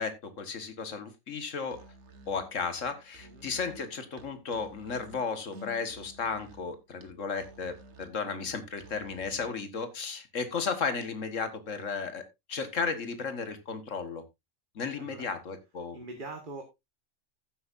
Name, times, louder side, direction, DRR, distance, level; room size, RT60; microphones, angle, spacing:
voice 1, 0.0-1.8 2.3-12.2 12.5-14.2 14.8-16.0, left 5 dB, 75° left, 10 dB, 1.8 m, -34 dB
Musical instrument, 1.6-9.6, right 1 dB, 65° right, 1.6 m, -53 dB
voice 2, 3.2-3.5 15.0-15.3 15.9-16.6, right 3 dB, 40° right, 4 dB, 1.7 m, -42 dB
14.5 x 8.2 x 2.6 m, 0.21 s
omnidirectional pair, 1.3 m